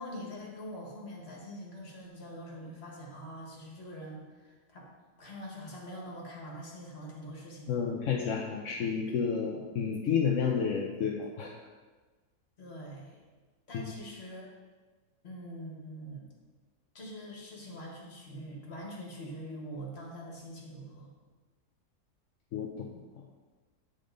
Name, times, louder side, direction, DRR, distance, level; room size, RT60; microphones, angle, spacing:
voice 1, 0.0-4.9 5.2-7.8 12.6-13.2 13.7-14.5 15.2-16.3 16.9-21.1, equal, 40° left, -2 dB, 1.7 m, -44 dB
voice 2, 7.7-11.5 22.5-22.9, left 6 dB, 65° left, 0 dB, 0.9 m, -30 dB
8.8 x 5.1 x 3.9 m, 1.3 s
omnidirectional pair, 1.7 m